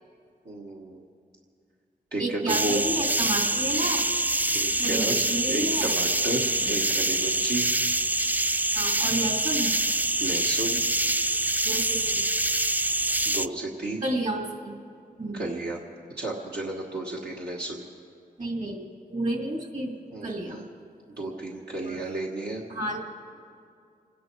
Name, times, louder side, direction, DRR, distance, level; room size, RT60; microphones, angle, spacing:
voice 1, 0.4-1.0 2.1-2.8 4.5-7.7 10.2-10.8 13.2-14.0 15.3-15.8 16.2-17.8 20.1-20.6 21.2-22.6, right 2 dB, 80° right, -3 dB, 1.5 m, -32 dB
voice 2, 2.2-4.0 4.8-5.9 6.6-6.8 8.7-9.7 11.6-12.3 14.0-14.7 15.2-15.5 18.4-19.9 20.2-20.6 21.8-22.1 22.7-23.0, right 1 dB, 50° right, 1 dB, 2.6 m, -31 dB
sound 1, 2.5-13.5, right 1 dB, 10° right, 0.3 m, -25 dB
28.0 x 10.0 x 4.7 m, 2.3 s
cardioid pair, 60°, 17 cm